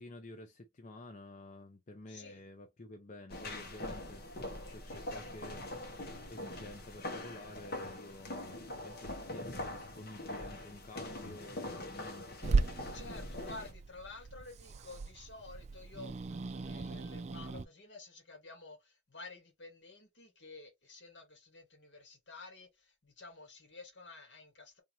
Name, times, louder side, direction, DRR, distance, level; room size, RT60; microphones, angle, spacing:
voice 1, 0.0-5.6 6.3-12.4, left 2 dB, 45° left, 0.6 m, -51 dB
voice 2, 2.1-2.5 4.9-5.3 12.7-24.8, left 3 dB, 75° left, 1.7 m, -51 dB
sound 1, 3.3-13.7, left 1 dB, 60° left, 1.2 m, -43 dB
Growling / Hiss, 12.4-17.7, right 4 dB, 40° right, 0.4 m, -36 dB
3.5 x 2.7 x 3.1 m
head